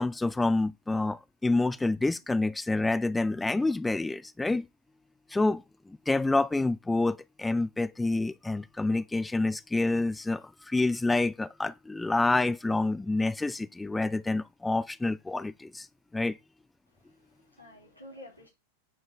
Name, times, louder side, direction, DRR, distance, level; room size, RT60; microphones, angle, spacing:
voice 1, 0.0-4.6 5.3-15.9 16.1-16.4, left 2 dB, 10° left, 0.4 m, -28 dB
voice 2, 16.9-18.5, left 1 dB, 90° left, 3.2 m, -51 dB
8.9 x 5.1 x 3.9 m
figure-of-eight pair, 90°, 0 cm